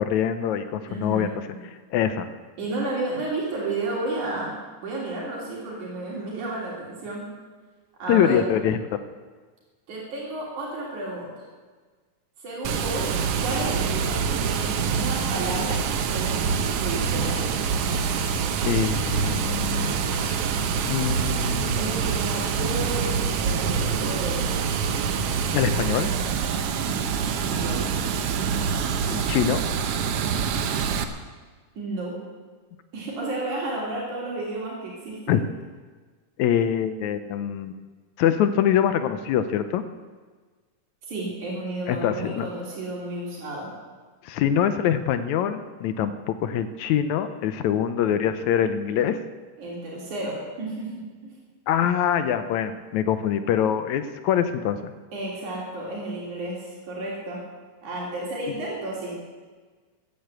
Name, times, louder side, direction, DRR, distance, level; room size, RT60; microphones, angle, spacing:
voice 1, 0.0-1.3 1.9-2.3 8.1-9.0 18.6-20.4 20.8-21.8 25.5-26.1 29.1-29.6 35.3-35.4 36.4-37.7 38.2-39.8 41.9-42.5 44.2-49.2 51.7-54.9, left 9 dB, 80° left, 10 dB, 2.1 m, -24 dB
voice 2, 0.9-1.4 2.6-7.3 8.0-8.5 9.9-11.5 12.4-17.5 21.7-24.7 27.4-27.8 31.8-32.2 32.9-35.4 41.1-43.7 49.6-51.3 55.1-57.4 57.8-59.1, right 2 dB, 85° right, -4 dB, 4.5 m, -32 dB
Water, 12.6-31.0, right 6 dB, 65° right, 1.7 m, -25 dB
15.0 x 10.0 x 8.0 m, 1.4 s
omnidirectional pair, 3.4 m